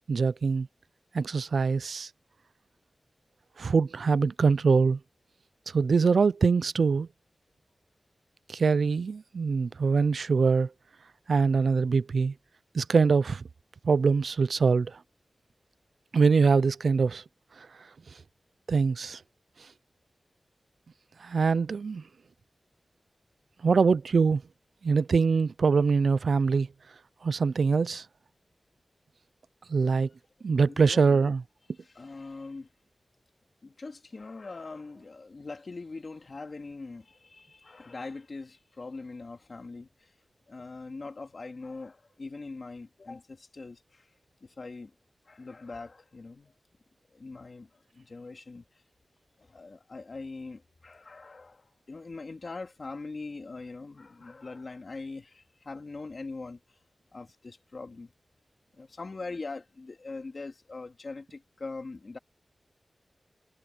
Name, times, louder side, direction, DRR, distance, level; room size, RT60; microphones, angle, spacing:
voice 1, 0.1-0.7 1.1-2.1 3.6-5.0 5.7-7.1 8.5-10.7 11.3-12.3 12.7-13.5 13.8-15.0 16.1-17.2 17.6-17.7 18.7-19.2 21.2-22.0 23.6-24.4 24.8-26.7 27.2-28.1 29.7-30.1 30.4-31.4, right 5 dB, 80° right, 0.4 m, -23 dB
voice 2, 30.7-31.3 31.8-32.7 33.6-40.1 40.5-44.0 44.4-44.9 45.3-46.5 47.1-48.7 49.4-56.6 57.1-58.1 58.8-62.2, left 3 dB, 50° left, 2.9 m, -42 dB
wide cardioid pair, 105°, 0 cm